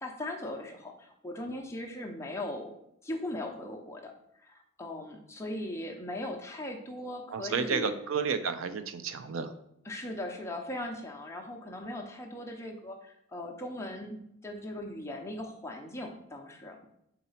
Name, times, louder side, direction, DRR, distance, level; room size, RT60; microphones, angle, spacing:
voice 1, 0.0-2.8 3.0-4.1 4.4-8.0 9.8-16.8, left 1 dB, 15° left, 1 dB, 0.7 m, -39 dB
voice 2, 7.3-9.5, right 5 dB, 75° right, 10 dB, 0.5 m, -31 dB
4.3 x 4.0 x 5.6 m, 0.77 s
head